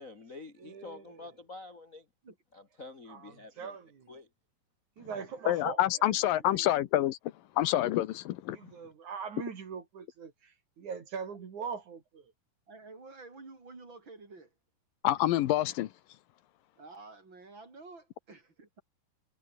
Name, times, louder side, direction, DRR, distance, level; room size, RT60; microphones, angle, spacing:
voice 1, 0.0-2.1 2.5-3.8 4.1-4.3, left 3 dB, 30° left, 1.7 m, -48 dB
voice 2, 0.6-1.2 3.1-4.1 5.0-6.2 6.5-6.7 8.5-12.3, right 6 dB, 55° right, 4.2 m, -42 dB
voice 3, 5.5-7.2 7.6-8.6 15.0-15.9, left 14 dB, 75° left, 2.6 m, -27 dB
voice 4, 12.7-14.5 16.8-18.8, right 3 dB, 30° right, 5.1 m, -50 dB
omnidirectional pair, 4.1 m